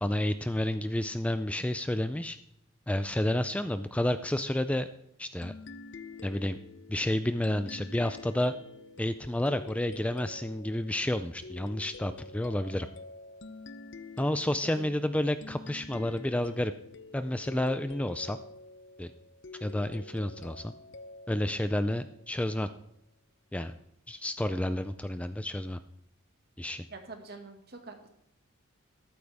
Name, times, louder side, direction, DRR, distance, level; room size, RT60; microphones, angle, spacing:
voice 1, 0.0-2.4 2.9-4.9 5.2-5.5 6.2-6.6 6.9-8.5 9.0-12.9 14.2-16.7 17.1-18.4 19.0-19.1 19.6-20.7 21.3-22.7 23.5-23.7 24.1-25.8 26.6-26.8, left 1 dB, 5° left, 11 dB, 0.3 m, -30 dB
sound 1, 5.4-22.6, left 3 dB, 60° left, 0.7 m, -48 dB
voice 2, 26.9-28.1, right 3 dB, 45° right, 4 dB, 1.8 m, -45 dB
13.5 x 12.0 x 3.5 m, 0.78 s
head